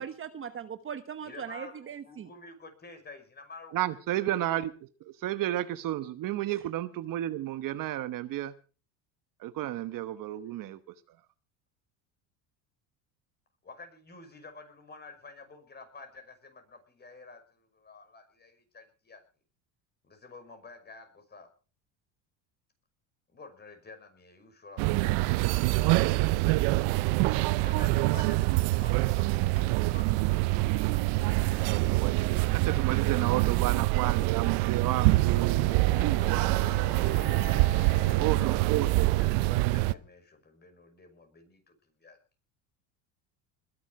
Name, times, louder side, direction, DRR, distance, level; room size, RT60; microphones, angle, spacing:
voice 1, 0.0-2.3, right 8 dB, 30° right, 9 dB, 1.1 m, -39 dB
voice 2, 1.2-4.0 4.3-4.4 13.6-19.2 20.0-21.5 23.3-25.3 27.1-31.5 36.4-36.6 38.0-38.5 38.7-42.2, left 3 dB, 25° left, 7 dB, 5.8 m, -50 dB
voice 3, 3.7-4.7 5.2-8.5 9.4-10.8 32.5-36.8 38.2-39.1, right 14 dB, 55° right, 12 dB, 1.1 m, -32 dB
sound 1, 24.8-39.9, right 20 dB, 75° right, 0.7 m, -25 dB
sound 2, 34.9-40.0, left 7 dB, 55° left, 2.8 m, -46 dB
21.0 x 11.0 x 4.8 m, 0.38 s
supercardioid pair, 115°, 40 cm